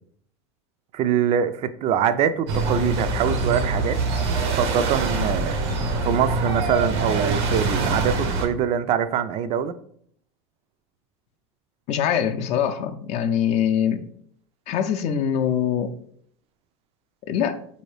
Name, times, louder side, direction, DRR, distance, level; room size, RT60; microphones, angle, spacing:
voice 1, 0.9-4.0 4.3-5.6 6.0-9.7, right 8 dB, 45° right, 12 dB, 0.4 m, -24 dB
sound 1, 2.5-8.5, right 3 dB, 80° right, 0.8 m, -24 dB
voice 2, 11.9-14.1 14.7-15.9 17.3-17.6, left 8 dB, 50° left, 8 dB, 0.4 m, -23 dB
4.4 x 2.7 x 3.2 m, 0.63 s
hypercardioid pair, 100°, 14 cm